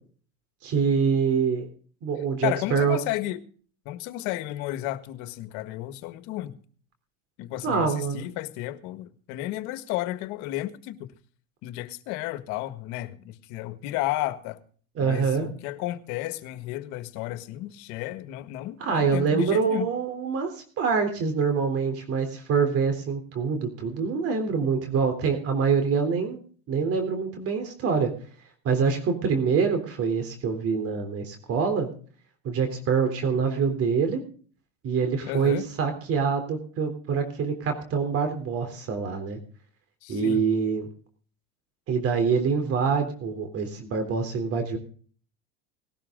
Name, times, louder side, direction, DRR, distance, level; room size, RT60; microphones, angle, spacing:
voice 1, 0.6-1.7 2.0-3.0 7.6-8.2 15.0-15.5 18.8-26.4 26.7-28.1 28.6-31.9 32.4-34.2 34.8-39.4 40.1-40.9 41.9-44.8, right 5 dB, 45° right, 3.5 m, -25 dB
voice 2, 2.4-3.4 3.8-6.5 7.4-11.0 11.6-14.6 15.0-19.9 35.2-35.6 40.0-40.4, left 15 dB, 65° left, 1.7 m, -33 dB
19.0 x 12.5 x 3.8 m
supercardioid pair, 105°, 32 cm